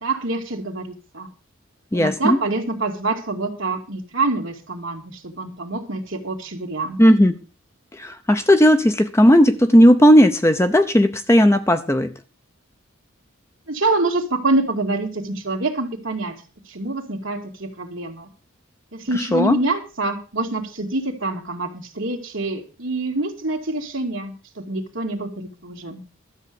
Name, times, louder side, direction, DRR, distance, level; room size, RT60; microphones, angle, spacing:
voice 1, 0.0-1.3 1.9-7.0 13.7-16.3 16.7-18.3 18.9-26.0, right 2 dB, 60° right, 2.3 m, -26 dB
voice 2, 1.9-2.4 7.0-7.4 7.9-12.1 19.1-19.6, equal, 10° left, 0.6 m, -15 dB
12.5 x 7.5 x 6.8 m
head